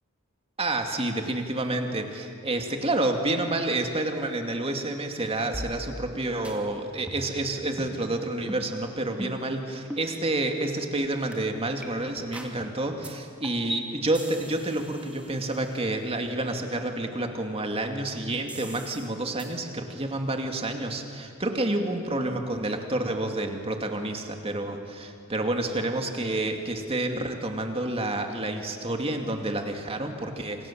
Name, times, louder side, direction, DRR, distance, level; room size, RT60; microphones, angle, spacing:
voice 1, 0.6-30.7, right 2 dB, 30° right, 4 dB, 2.4 m, -29 dB
sound 1, 5.5-6.2 6.4-6.6 7.1-7.4 7.8-8.0 8.5-8.7 9.2-9.5 9.9-10.1 10.6-10.7 11.3-11.4 11.8-11.9 12.3-12.6 13.0-13.1 13.4-13.8 14.1-16.0 18.5-19.1 19.4-19.5, equal, 5° right, 2.7 m, -40 dB
27.5 x 27.0 x 7.6 m, 2.4 s
head